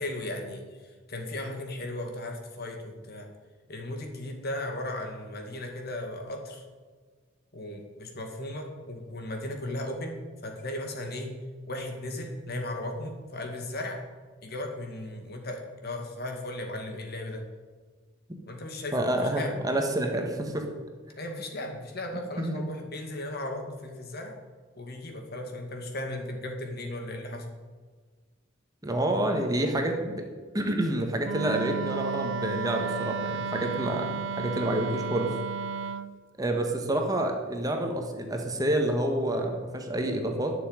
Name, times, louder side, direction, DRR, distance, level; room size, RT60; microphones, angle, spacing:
voice 1, 0.0-3.3 3.7-6.6 7.5-11.3 11.7-14.0 14.4-17.4 18.5-19.6 21.2-24.3 24.7-27.5, left 1 dB, 55° left, 4 dB, 2.1 m, -36 dB
voice 2, 18.9-20.6 22.4-22.6 28.8-30.2 30.5-35.3 36.4-40.5, right 1 dB, 20° right, 3 dB, 1.5 m, -28 dB
Wind instrument woodwind instrument, 31.2-36.1, right 5 dB, 70° right, 0.6 m, -33 dB
11.0 x 7.1 x 9.7 m, 1.5 s
head